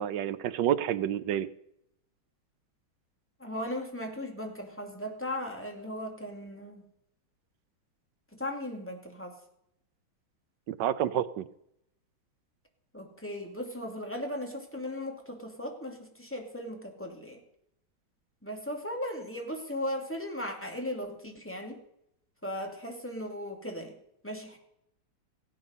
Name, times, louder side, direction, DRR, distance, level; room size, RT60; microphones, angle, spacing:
voice 1, 0.0-1.5 10.7-11.5, right 10 dB, 70° right, 15 dB, 1.3 m, -29 dB
voice 2, 3.4-6.9 8.3-9.4 12.9-17.4 18.4-21.8 22.4-24.0 24.2-24.6, left 1 dB, 5° left, 2 dB, 2.3 m, -37 dB
17.5 x 8.8 x 5.5 m, 0.77 s
omnidirectional pair, 2.2 m